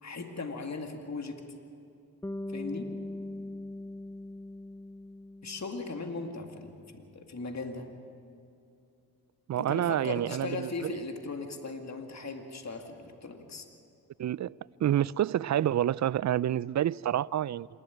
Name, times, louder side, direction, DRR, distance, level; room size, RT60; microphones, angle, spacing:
voice 1, 0.0-1.4 2.5-2.9 5.4-7.9 9.5-13.7, left 3 dB, 45° left, 2.3 m, -38 dB
Bass guitar, 2.2-6.5, left 1 dB, 5° left, 0.6 m, -41 dB
voice 2, 9.5-11.0 14.2-17.7, right 11 dB, 50° right, 0.4 m, -28 dB
26.5 x 12.5 x 9.5 m
supercardioid pair, 45°, 37 cm